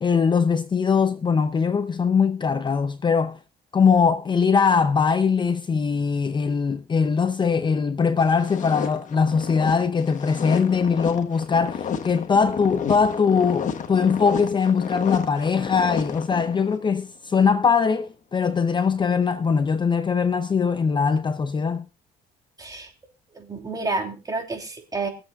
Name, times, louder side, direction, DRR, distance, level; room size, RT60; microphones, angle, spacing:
voice 1, 0.0-3.4 3.7-21.9, left 5 dB, 30° left, 0.6 m, -21 dB
sound 1, 8.2-16.8, left 7 dB, 50° left, 1.3 m, -32 dB
voice 2, 22.6-22.9 23.3-25.1, right 3 dB, 20° right, 3.0 m, -29 dB
23.5 x 7.9 x 2.4 m
cardioid pair, 110°, 17 cm